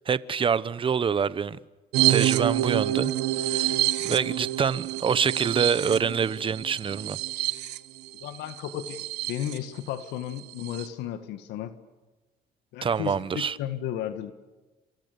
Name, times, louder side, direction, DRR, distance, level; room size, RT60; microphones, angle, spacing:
voice 1, 0.1-1.6 2.1-3.1 3.4-7.2 12.8-13.6, right 6 dB, 30° right, 1.0 m, -26 dB
sound 1, 1.9-9.6 10.0-10.1 10.4-10.9, right 14 dB, 90° right, 1.4 m, -27 dB
voice 2, 8.2-11.7 12.7-14.3, left 11 dB, 85° left, 1.9 m, -34 dB
29.5 x 27.0 x 6.9 m
cardioid pair, 110°, 17 cm